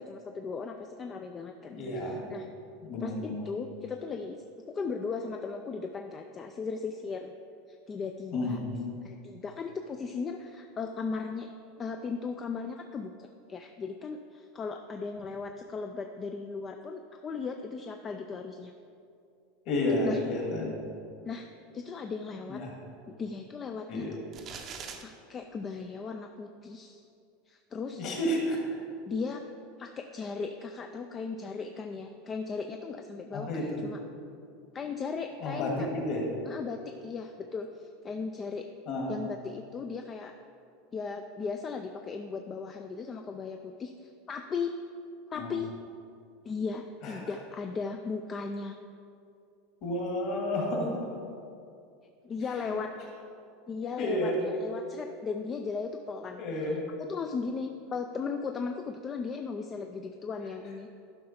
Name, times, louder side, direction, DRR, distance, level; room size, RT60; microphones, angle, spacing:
voice 1, 0.0-1.8 2.1-2.5 3.0-7.3 7.9-8.6 9.0-11.5 11.8-18.7 20.0-20.2 21.2-21.5 21.7-22.6 23.1-24.2 24.6-24.7 25.0-27.0 27.5-28.1 29.1-29.4 29.8-34.0 34.7-35.9 36.5-38.7 39.1-40.3 40.9-44.7 45.3-45.7 46.4-48.8 52.2-52.9 53.7-56.4 57.0-60.9, left 5 dB, 20° left, 5 dB, 0.3 m, -37 dB
voice 2, 1.7-2.3 2.8-3.4 8.3-8.9 19.7-20.8 22.5-22.7 23.9-24.1 27.9-28.6 33.3-33.8 35.4-36.2 38.9-39.1 45.4-45.5 47.0-47.2 49.8-51.1 54.0-54.4 56.4-56.8, left 1 dB, 40° left, -1 dB, 2.0 m, -31 dB
sound 1, 24.3-25.0, right 6 dB, 25° right, 0.6 m, -41 dB
11.0 x 5.6 x 4.2 m, 2.5 s
supercardioid pair, 170°, 0 cm